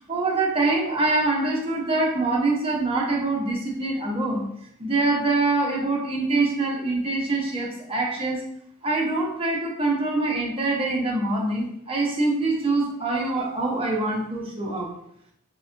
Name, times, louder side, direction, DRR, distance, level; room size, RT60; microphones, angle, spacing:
voice 1, 0.1-4.5 4.8-8.4 8.8-14.9, right 2 dB, 25° right, -2 dB, 0.7 m, -24 dB
4.7 x 2.1 x 2.5 m, 0.73 s
head